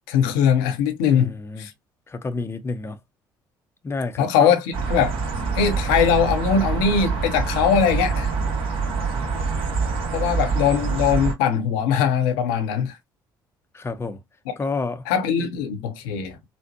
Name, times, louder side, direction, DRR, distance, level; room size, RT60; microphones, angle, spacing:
voice 1, 0.1-1.7 4.2-4.6 4.9-5.1 5.5-8.3 10.1-13.0 15.1-16.5, left 7 dB, 75° left, 0.7 m, -21 dB
voice 2, 1.1-1.7 2.1-3.0 3.8-4.5 13.7-14.2 14.6-15.1, left 3 dB, 25° left, 0.6 m, -29 dB
sound 1, 4.7-11.3, right 4 dB, 60° right, 1.7 m, -25 dB
4.0 x 2.1 x 2.7 m
hypercardioid pair, 50°, 11 cm